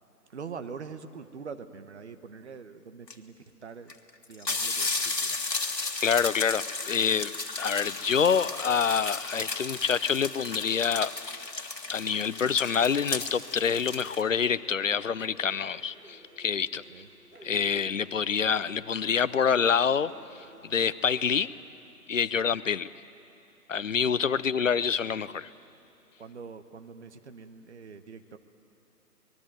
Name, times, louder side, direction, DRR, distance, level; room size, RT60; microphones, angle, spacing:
voice 1, 0.3-3.3 3.6-3.9 4.3-5.4 16.9-17.1 22.3-22.6 24.4-24.7 26.2-28.4, right 5 dB, 45° right, 9 dB, 1.3 m, -44 dB
sound 1, 3.1-3.2 3.9-4.0 4.2-14.2, left 3 dB, 90° left, 1.8 m, -34 dB
voice 2, 6.0-7.3 7.6-11.4 11.9-16.8 17.4-20.1 20.6-21.5 22.1-22.9 23.7-25.5, left 7 dB, 50° left, 17 dB, 0.6 m, -26 dB
sound 2, 10.9-21.5, right 2 dB, 70° right, 6.3 m, -55 dB
25.0 x 20.5 x 7.8 m, 2.7 s
figure-of-eight pair, 150°, 49 cm